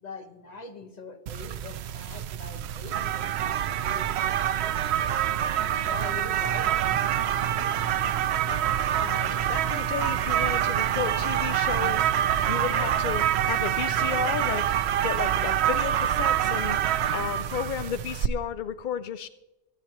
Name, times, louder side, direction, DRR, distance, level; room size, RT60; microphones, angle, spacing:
voice 1, 0.0-4.1 5.0-5.2 5.6-7.0 7.3-7.5, left 4 dB, 35° left, 7 dB, 1.3 m, -43 dB
sound 1, 1.3-18.3, right 11 dB, 65° right, 0.8 m, -26 dB
sound 2, 6.4-14.5, right 5 dB, 90° right, 1.5 m, -40 dB
voice 2, 7.6-8.0 8.5-8.6 9.0-12.1 12.5-14.7 15.0-16.8 17.1-19.3, left 8 dB, 60° left, 12 dB, 0.5 m, -33 dB
24.5 x 9.4 x 3.0 m, 1.0 s
omnidirectional pair, 1.3 m